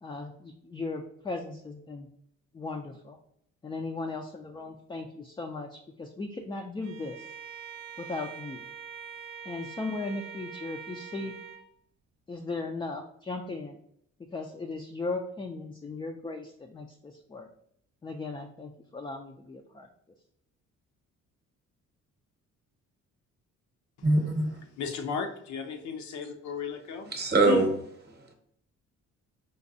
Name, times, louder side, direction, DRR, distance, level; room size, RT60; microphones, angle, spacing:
voice 1, 0.0-2.1 2.5-3.2 3.6-7.3 8.0-8.6 9.5-11.3 12.3-13.8 14.3-17.5 18.0-19.9, left 3 dB, 15° left, 3 dB, 0.3 m, -37 dB
Bowed string instrument, 6.8-11.7, right 7 dB, 80° right, 0.5 m, -44 dB
voice 2, 24.0-24.6 27.1-27.7 28.2-28.3, right 2 dB, 35° right, 4 dB, 0.9 m, -23 dB
voice 3, 24.7-27.1 27.4-27.7, left 5 dB, 70° left, 5 dB, 0.6 m, -34 dB
5.0 x 2.3 x 2.6 m, 0.70 s
cardioid pair, 90°, 30 cm